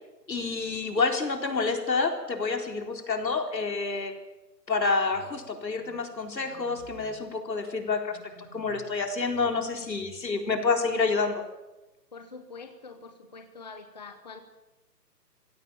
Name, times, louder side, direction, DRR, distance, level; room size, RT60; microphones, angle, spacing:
voice 1, 0.3-4.1 4.7-8.2 8.5-11.4, left 4 dB, 85° left, 4 dB, 4.1 m, -28 dB
sound 1, 5.1-5.4 5.8-5.9 6.4-7.2 8.1-8.9 9.3-10.3, right 5 dB, 10° right, 5.8 m, -52 dB
voice 2, 12.1-14.4, left 4 dB, 25° left, 7 dB, 1.1 m, -45 dB
25.0 x 16.5 x 7.1 m, 1.1 s
hypercardioid pair, 170°, 50 cm